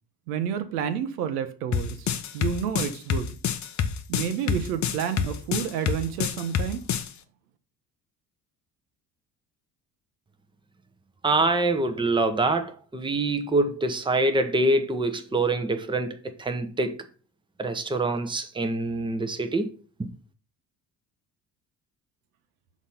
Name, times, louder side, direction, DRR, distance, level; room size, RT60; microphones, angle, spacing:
voice 1, 0.3-3.4 4.1-6.8, right 8 dB, 70° right, 0.8 m, -30 dB
sound 1, 1.7-7.1, left 8 dB, 35° left, 0.8 m, -27 dB
voice 2, 11.2-17.0 17.6-19.7, right 2 dB, 10° right, 0.9 m, -25 dB
6.0 x 4.1 x 5.5 m
figure-of-eight pair, 50°, 48 cm